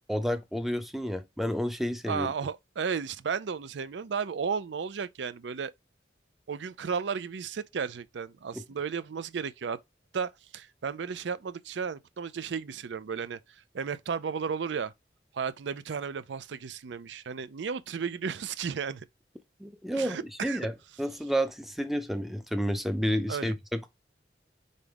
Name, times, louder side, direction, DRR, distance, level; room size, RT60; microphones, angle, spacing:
voice 1, 0.1-2.3 8.5-8.6 19.6-20.7 21.0-23.9, equal, ahead, 0.5 m, -30 dB
voice 2, 2.1-5.7 6.5-9.8 10.1-13.4 13.7-14.9 15.3-19.1 19.9-20.7 23.3-23.5, right 6 dB, 80° right, 0.5 m, -34 dB
3.9 x 3.5 x 3.5 m
head